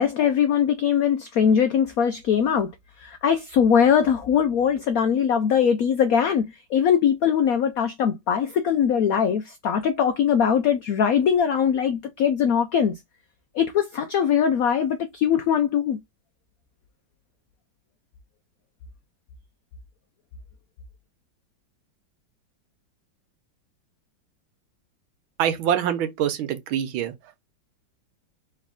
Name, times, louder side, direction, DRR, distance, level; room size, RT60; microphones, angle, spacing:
voice 1, 0.0-2.7 3.0-6.4 6.7-13.0 13.5-16.0, left 8 dB, 85° left, 0.7 m, -21 dB
voice 2, 25.4-27.1, right 9 dB, 90° right, 1.6 m, -25 dB
3.4 x 3.2 x 3.6 m
omnidirectional pair, 2.1 m